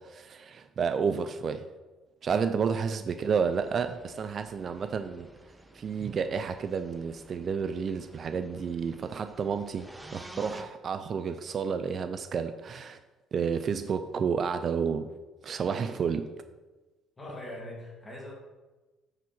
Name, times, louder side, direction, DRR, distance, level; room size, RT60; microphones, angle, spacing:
voice 1, 0.0-1.7 2.2-5.3 5.7-13.0 13.3-15.1 15.4-16.3, right 6 dB, 45° right, 10 dB, 0.4 m, -31 dB
sound 1, 3.2-10.6, right 1 dB, 10° right, 0.8 m, -51 dB
voice 2, 17.2-18.3, left 1 dB, 20° left, -2 dB, 2.7 m, -42 dB
9.4 x 5.0 x 4.2 m, 1.2 s
cardioid pair, 95°, 0 cm